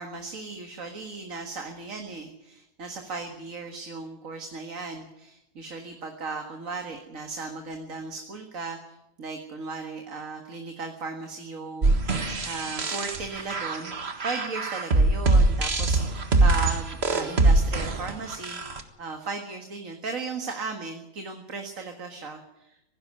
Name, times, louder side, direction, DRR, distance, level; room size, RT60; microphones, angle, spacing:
voice 1, 0.0-14.0 14.2-22.8, right 4 dB, 75° right, 4 dB, 2.2 m, -36 dB
sound 1, 11.8-18.8, right 2 dB, 50° right, 1.9 m, -23 dB
18.0 x 15.5 x 9.6 m, 0.90 s
omnidirectional pair, 1.4 m